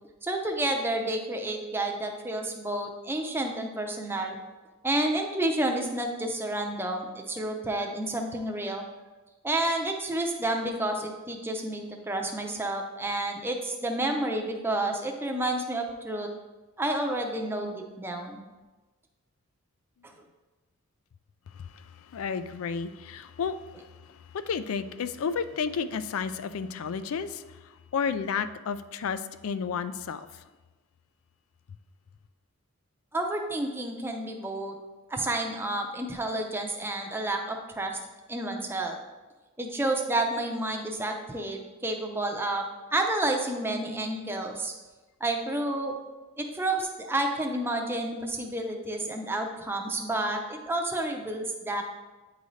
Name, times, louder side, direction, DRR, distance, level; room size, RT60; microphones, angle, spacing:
voice 1, 0.2-4.4 4.8-8.9 9.4-16.3 16.8-18.4 33.1-34.8 35.1-38.0 38.3-39.0 39.6-42.6 42.9-44.7 45.2-46.0 46.4-51.8, right 1 dB, 10° right, 2 dB, 0.6 m, -30 dB
voice 2, 21.5-30.4, left 6 dB, 75° left, 12 dB, 0.4 m, -32 dB
9.3 x 3.9 x 3.2 m, 1.2 s
head